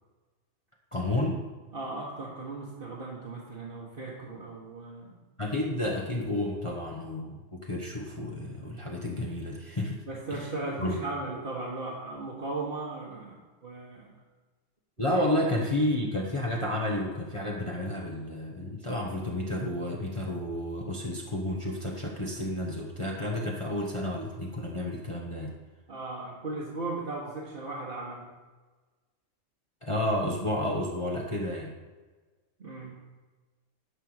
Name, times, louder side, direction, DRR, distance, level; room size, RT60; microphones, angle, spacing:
voice 1, 0.9-1.4 5.4-10.0 10.3-10.5 10.8-10.9 15.0-25.5 29.8-31.7, left 1 dB, 25° left, -2 dB, 1.1 m, -31 dB
voice 2, 1.7-5.1 10.1-14.0 15.1-15.2 15.6-15.7 25.9-28.3 32.6-33.0, right 2 dB, 45° right, -6 dB, 1.7 m, -37 dB
11.0 x 4.5 x 6.5 m, 1.3 s
omnidirectional pair, 1.4 m